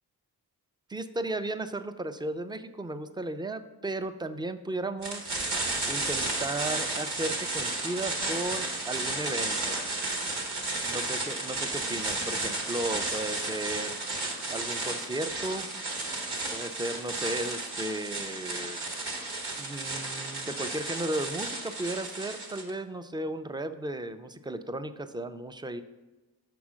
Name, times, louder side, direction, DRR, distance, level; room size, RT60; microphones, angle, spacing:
voice 1, 0.9-5.3 5.9-9.8 10.9-13.9 14.5-15.7 16.5-18.8 19.6-25.8, right 2 dB, 10° right, 10 dB, 0.4 m, -35 dB
sound 1, 5.0-22.7, right 2 dB, 90° right, 1.3 m, -33 dB
6.1 x 3.7 x 6.1 m, 1.1 s
cardioid pair, 50°, 39 cm